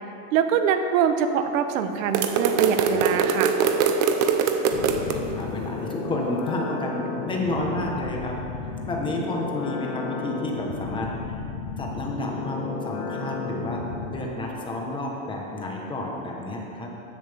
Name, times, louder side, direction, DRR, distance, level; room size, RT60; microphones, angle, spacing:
voice 1, 0.3-3.5, right 7 dB, 80° right, 8 dB, 1.0 m, -24 dB
sound 1, 2.1-5.2, right 6 dB, 45° right, 0.8 m, -22 dB
sound 2, 4.7-14.1, left 4 dB, 85° left, 1.9 m, -33 dB
voice 2, 5.0-11.5 11.8-13.8 14.1-16.9, left 1 dB, 10° left, -1 dB, 1.1 m, -31 dB
15.0 x 10.5 x 3.5 m, 2.8 s
cardioid pair, 175°, 39 cm